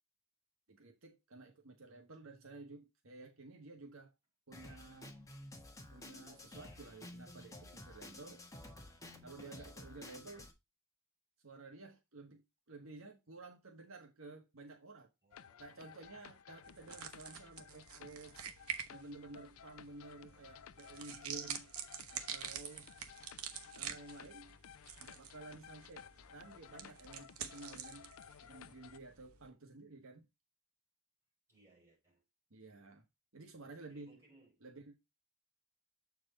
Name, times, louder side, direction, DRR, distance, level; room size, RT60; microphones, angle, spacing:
voice 1, 0.7-4.1 4.5-5.2 5.9-8.4 9.2-10.5 11.4-15.1 15.6-18.5 18.9-21.7 22.1-22.9 23.7-24.6 25.0-28.1 28.4-30.3 32.5-33.0 33.3-34.2 34.6-34.9, right 3 dB, 70° right, 1.5 m, -53 dB
Drum kit, 4.5-10.5, left 1 dB, 15° left, 1.4 m, -52 dB
voice 2, 15.2-16.4 31.5-32.2 33.9-34.7, right 2 dB, 15° right, 5.0 m, -67 dB
sound 1, 15.3-29.0, left 8 dB, 80° left, 0.4 m, -57 dB
sound 2, 16.6-29.5, right 8 dB, 85° right, 1.0 m, -48 dB
7.5 x 4.6 x 4.0 m
head